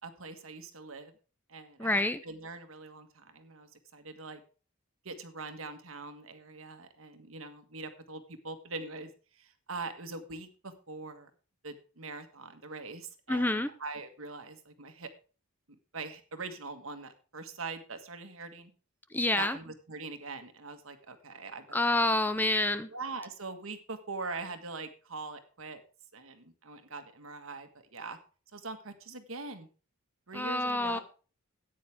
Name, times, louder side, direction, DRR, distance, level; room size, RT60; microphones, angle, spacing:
voice 1, 0.0-1.1 1.5-4.4 5.0-11.3 11.6-15.1 15.7-18.7 19.4-22.2 22.9-25.8 26.1-28.2 28.5-29.7 30.3-31.0, right 3 dB, 70° right, 8 dB, 1.7 m, -43 dB
voice 2, 1.8-2.2 13.3-13.7 19.1-19.6 21.7-22.9 30.3-31.0, left 2 dB, 10° left, 12 dB, 0.5 m, -28 dB
13.5 x 9.5 x 3.5 m, 0.37 s
head